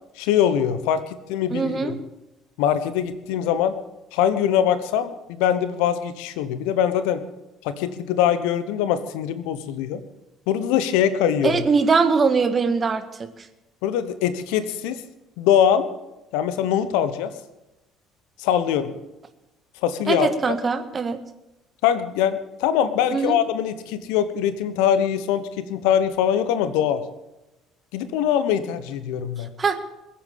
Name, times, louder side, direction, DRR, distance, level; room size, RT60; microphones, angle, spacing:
voice 1, 0.2-1.0 1.3-2.0 2.6-3.7 4.1-7.2 7.6-10.0 10.5-11.6 13.8-15.0 15.4-15.8 16.3-17.3 18.4-18.9 19.8-20.6 21.8-27.0 27.9-29.5, left 9 dB, 70° left, 12 dB, 1.1 m, -22 dB
voice 2, 1.5-1.9 11.4-13.3 20.1-21.2 23.1-23.4 29.6-29.8, right 5 dB, 35° right, 9 dB, 1.8 m, -21 dB
21.5 x 8.7 x 7.4 m, 0.96 s
figure-of-eight pair, 55°, 0 cm